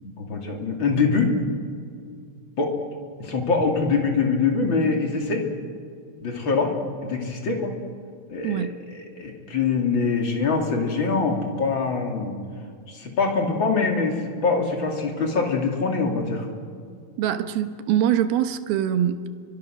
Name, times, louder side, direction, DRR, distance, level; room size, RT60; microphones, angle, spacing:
voice 1, 0.2-1.3 2.6-2.7 3.2-5.5 6.2-6.7 7.0-7.7 8.3-8.6 9.2-12.3 12.9-16.5, left 4 dB, 35° left, 2 dB, 3.1 m, -23 dB
voice 2, 8.4-8.8 17.2-19.2, right 10 dB, 80° right, 9 dB, 2.9 m, -23 dB
30.0 x 23.5 x 6.3 m, 2.4 s
omnidirectional pair, 4.4 m